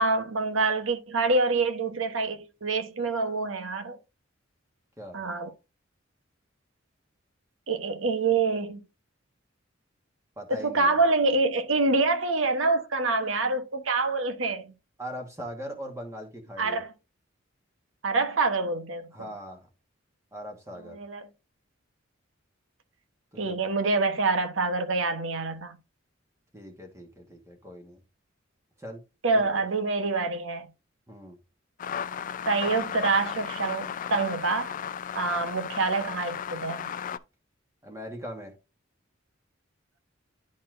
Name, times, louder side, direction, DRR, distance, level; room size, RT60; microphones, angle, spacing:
voice 1, 0.0-4.0 5.1-5.5 7.7-8.8 10.5-14.7 16.6-16.9 18.0-19.1 20.8-21.2 23.4-25.8 29.2-30.7 32.5-34.7 35.1-36.9, right 3 dB, 80° right, 1.0 m, -26 dB
voice 2, 10.4-11.0 15.0-16.8 19.1-19.7 20.3-21.0 23.3-23.5 26.5-28.0 28.8-29.0 29.3-29.7 31.1-31.4 37.8-38.5, equal, 15° right, 1.4 m, -40 dB
sound 1, 31.8-37.2, left 8 dB, 45° left, 0.3 m, -35 dB
11.0 x 4.1 x 2.5 m
head